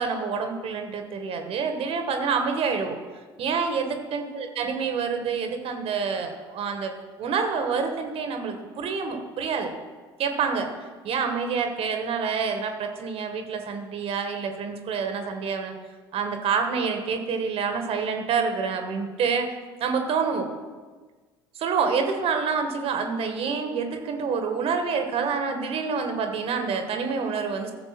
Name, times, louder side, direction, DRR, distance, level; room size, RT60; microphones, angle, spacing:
voice 1, 0.0-3.0 3.4-6.9 7.2-9.7 10.2-10.7 11.0-15.7 16.1-19.5 19.8-20.5 21.6-27.7, right 5 dB, 50° right, 5 dB, 1.7 m, -27 dB
15.5 x 6.7 x 6.0 m, 1.4 s
figure-of-eight pair, 60°, 13 cm